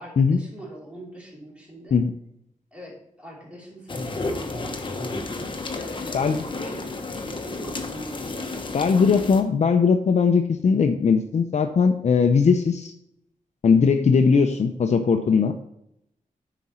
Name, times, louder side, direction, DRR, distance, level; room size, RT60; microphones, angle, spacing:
voice 1, 0.0-2.0 2.7-4.8 5.7-9.2, right 1 dB, 10° right, -4 dB, 2.8 m, -42 dB
sound 1, 3.9-9.4, left 3 dB, 35° left, 1.0 m, -32 dB
voice 2, 8.7-12.9 13.6-15.5, left 5 dB, 55° left, 6 dB, 0.6 m, -19 dB
9.5 x 5.0 x 4.3 m, 0.77 s
wide cardioid pair, 140°, 14 cm